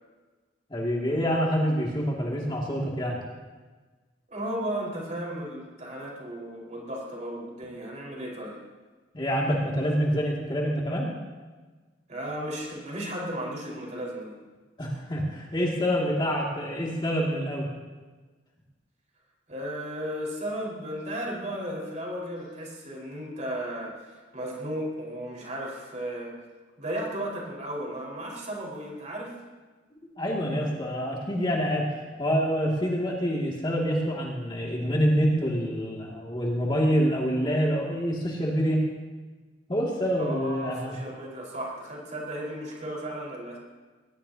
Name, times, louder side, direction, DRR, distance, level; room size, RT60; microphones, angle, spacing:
voice 1, 0.7-3.2 9.1-11.2 14.8-17.7 30.2-31.9 32.2-38.9 39.7-41.0, equal, 25° left, -3 dB, 2.4 m, -26 dB
voice 2, 4.3-8.6 12.1-14.3 19.5-26.3 26.8-29.4 40.2-43.6, right 1 dB, 40° right, -3 dB, 4.9 m, -35 dB
20.5 x 20.0 x 2.9 m, 1.3 s
head